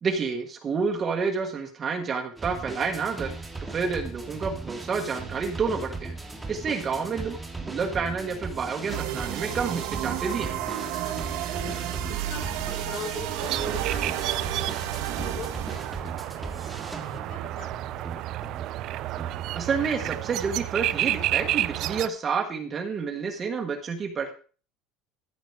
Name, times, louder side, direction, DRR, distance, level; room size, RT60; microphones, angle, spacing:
voice 1, 0.0-3.3 3.6-6.2 6.5-10.6 19.5-24.3, right 5 dB, 25° right, 4 dB, 1.4 m, -29 dB
sound 1, 2.4-21.3, right 3 dB, 5° right, 1.7 m, -38 dB
voice 2, 6.4-6.7 11.0-11.9 12.3-14.6 15.2-16.6 17.0-18.2, left 6 dB, 50° left, 0 dB, 5.4 m, -43 dB
sound 2, 8.9-16.0, right 11 dB, 70° right, 1.6 m, -32 dB
sound 3, 13.4-22.1, right 15 dB, 45° right, 0.5 m, -31 dB
14.0 x 6.0 x 4.8 m, 0.39 s
cardioid pair, 165°, 0 cm